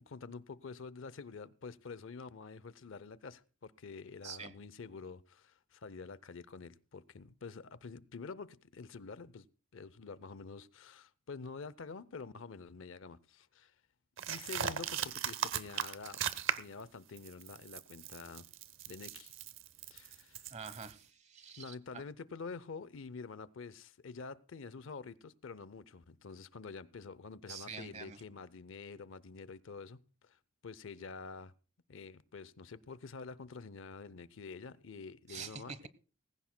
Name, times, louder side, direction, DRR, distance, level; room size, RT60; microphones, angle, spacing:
voice 1, 0.0-9.4 9.7-13.7 14.3-16.2 16.6-18.5 18.9-19.3 19.9-20.4 21.6-30.4 30.6-31.5 31.9-35.9, left 4 dB, 60° left, 0.6 m, -48 dB
voice 2, 4.2-4.5 20.5-22.0 27.5-28.2 35.3-35.9, right 5 dB, 30° right, 1.0 m, -46 dB
sound 1, 14.2-16.8 17.2-20.9, right 8 dB, 60° right, 0.8 m, -38 dB
19.5 x 16.5 x 2.2 m
head